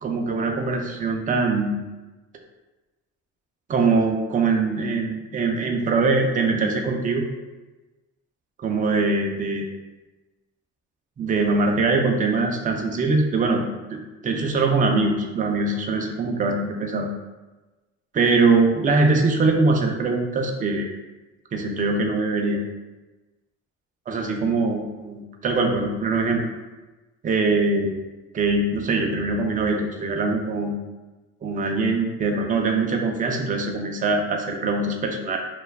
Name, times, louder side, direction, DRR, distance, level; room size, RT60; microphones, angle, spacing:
voice 1, 0.0-1.7 3.7-7.3 8.6-9.7 11.2-17.1 18.1-20.9 21.5-22.6 24.1-26.4 27.2-28.0 28.3-30.7 31.4-35.4, right 3 dB, 25° right, 2 dB, 0.4 m, -22 dB
2.3 x 2.2 x 3.2 m, 1.1 s
cardioid pair, 90°, 30 cm